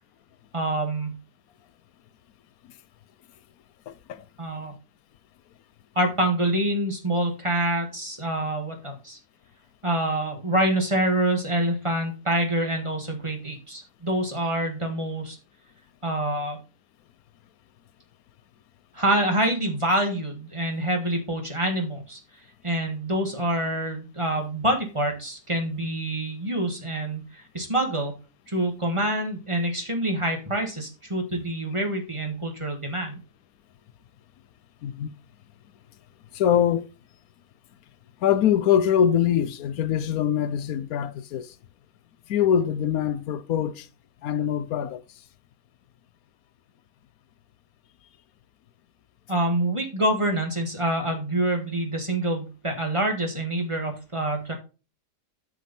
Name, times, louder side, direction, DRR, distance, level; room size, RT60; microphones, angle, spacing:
voice 1, 0.5-1.2 4.4-4.7 6.0-9.2 9.8-15.4 16.0-16.6 18.9-22.2 22.6-28.1 28.5-33.2 49.3-54.5, right 1 dB, 20° right, 1.7 m, -26 dB
voice 2, 3.9-4.2 34.8-35.1 36.3-36.9 38.2-41.5 42.3-43.9 44.2-45.0, left 9 dB, 70° left, 1.1 m, -23 dB
9.1 x 6.4 x 4.2 m
omnidirectional pair, 1.7 m